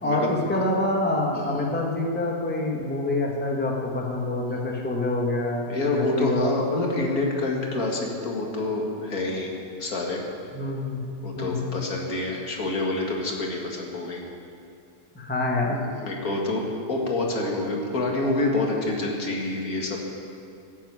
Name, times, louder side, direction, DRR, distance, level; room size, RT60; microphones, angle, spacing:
voice 1, 0.0-6.5 10.5-11.0 11.4-11.7 15.1-15.8, left 2 dB, 5° left, -1 dB, 1.4 m, -26 dB
voice 2, 1.3-1.7 5.7-9.5 9.8-10.2 11.2-14.2 15.7-16.6 16.9-20.0, left 2 dB, 85° left, 0 dB, 2.3 m, -27 dB
15.5 x 7.5 x 8.9 m, 2.5 s
omnidirectional pair, 1.5 m